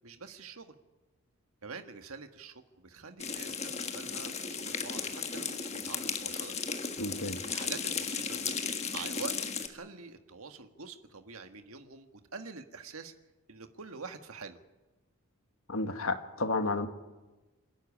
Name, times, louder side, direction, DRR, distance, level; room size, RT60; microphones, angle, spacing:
voice 1, 0.0-0.7 1.6-6.5 7.5-8.5 8.9-13.1 13.5-14.6, right 4 dB, 70° right, 7 dB, 1.7 m, -46 dB
sound 1, 3.2-9.7, left 6 dB, 30° left, 1.6 m, -35 dB
voice 2, 7.0-7.4 15.7-16.9, left 2 dB, 65° left, 7 dB, 1.7 m, -31 dB
28.0 x 12.5 x 10.0 m, 1.1 s
head